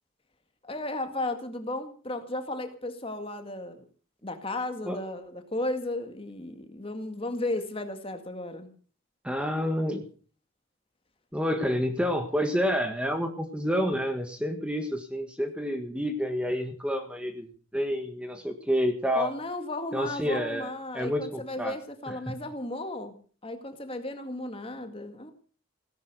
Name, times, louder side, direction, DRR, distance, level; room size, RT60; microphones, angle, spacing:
voice 1, 0.6-3.8 4.2-8.7 19.2-23.1 23.4-25.3, left 2 dB, 25° left, 7 dB, 1.9 m, -34 dB
voice 2, 9.2-10.0 11.3-17.5 17.7-19.3 19.9-20.7 20.9-21.8 22.1-22.4, equal, 5° right, 6 dB, 1.5 m, -29 dB
17.0 x 11.0 x 6.7 m, 0.42 s
head